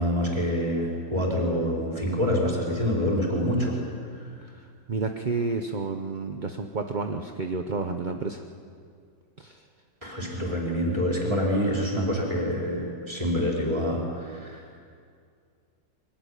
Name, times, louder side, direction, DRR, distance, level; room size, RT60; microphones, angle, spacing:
voice 1, 0.0-3.8 4.2-4.5 10.0-14.8, equal, 15° right, -3 dB, 4.9 m, -26 dB
voice 2, 4.9-8.4 9.4-9.6, right 4 dB, 40° right, 5 dB, 0.7 m, -30 dB
23.5 x 16.5 x 10.0 m, 2.2 s
omnidirectional pair, 2.0 m